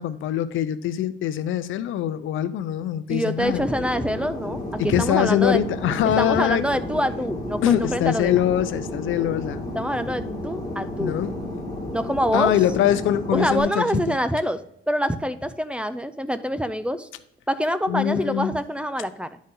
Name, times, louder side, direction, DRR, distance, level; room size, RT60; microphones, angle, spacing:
voice 1, 0.0-3.6 4.8-6.6 7.6-9.6 11.0-11.5 12.3-14.0 17.9-18.5, left 11 dB, 80° left, 13 dB, 0.6 m, -23 dB
voice 2, 3.1-5.6 6.1-8.3 9.7-11.2 11.9-12.5 13.3-14.6 14.9-17.1 17.5-19.4, equal, 5° right, 12 dB, 0.6 m, -25 dB
Fixed-wing aircraft airplane, 3.4-13.6, left 1 dB, 15° left, 2.3 m, -32 dB
11.0 x 4.2 x 3.8 m, 0.73 s
cardioid pair, 90°, 20 cm